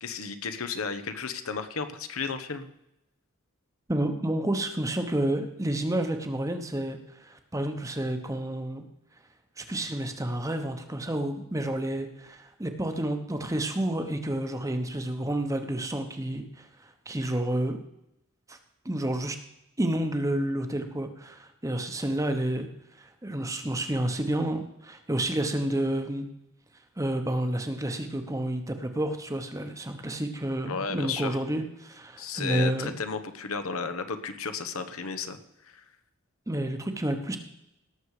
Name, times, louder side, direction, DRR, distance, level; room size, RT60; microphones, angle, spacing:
voice 1, 0.0-2.7 30.7-31.4 32.2-35.4, left 5 dB, 80° left, 9 dB, 1.0 m, -33 dB
voice 2, 3.9-8.8 9.6-17.8 18.5-18.6 18.8-19.4 19.8-22.7 23.0-26.3 27.0-32.9 36.5-37.4, right 1 dB, 15° right, 6 dB, 1.0 m, -30 dB
18.0 x 6.8 x 4.9 m, 0.84 s
head